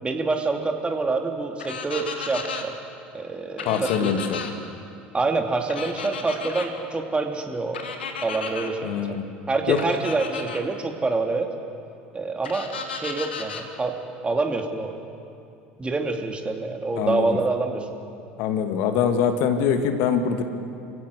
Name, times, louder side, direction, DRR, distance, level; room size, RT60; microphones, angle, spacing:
voice 1, 0.0-2.7 3.1-4.1 5.1-7.8 8.2-9.2 9.5-11.5 12.1-14.0 14.2-14.9 15.8-17.9, right 3 dB, 20° right, 4 dB, 2.5 m, -26 dB
sound 1, 1.6-2.6 3.6-4.5 5.7-6.7 7.7-8.7 9.8-10.6 12.4-13.6, left 5 dB, 85° left, 1.8 m, -34 dB
voice 2, 3.6-4.4 8.8-9.2 9.7-9.8 17.0-17.3 18.4-20.4, left 7 dB, 60° left, 7 dB, 1.7 m, -23 dB
27.5 x 16.5 x 6.4 m, 2.6 s
hypercardioid pair, 70°, 6 cm